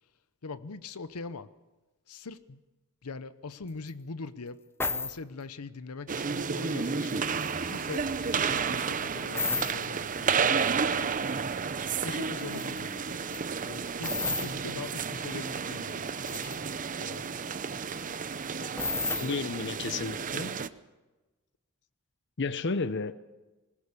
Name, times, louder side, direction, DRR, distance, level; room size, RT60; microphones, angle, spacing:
voice 1, 0.4-1.5 2.1-2.6 3.0-4.6 4.9-11.1 12.0-13.4 13.6-17.4, left 4 dB, 85° left, 14 dB, 0.8 m, -42 dB
sound 1, 3.9-4.0 4.8-5.2 6.4-6.7 7.0-8.0 9.3-9.9 12.1-12.2 12.4-12.8 13.2-13.4 14.0-14.5 15.3-15.4 15.7-16.6 18.8-19.3, left 4 dB, 10° left, 0.8 m, -32 dB
sound 2, 6.1-20.7, right 5 dB, 35° right, 0.7 m, -31 dB
voice 2, 19.2-20.5 22.4-23.1, left 4 dB, 55° left, 14 dB, 0.8 m, -32 dB
20.5 x 19.5 x 6.9 m, 1.2 s
head